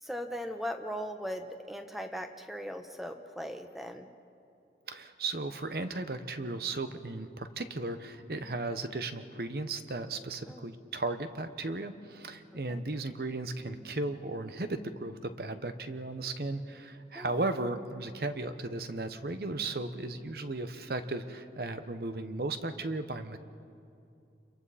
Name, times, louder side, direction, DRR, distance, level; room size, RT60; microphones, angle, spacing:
voice 1, 0.0-4.1 10.5-10.7 12.7-12.8 17.1-17.4, equal, ahead, 6 dB, 1.0 m, -39 dB
voice 2, 4.9-23.4, right 2 dB, 60° right, 9 dB, 1.1 m, -36 dB
29.0 x 23.0 x 4.2 m, 2.6 s
head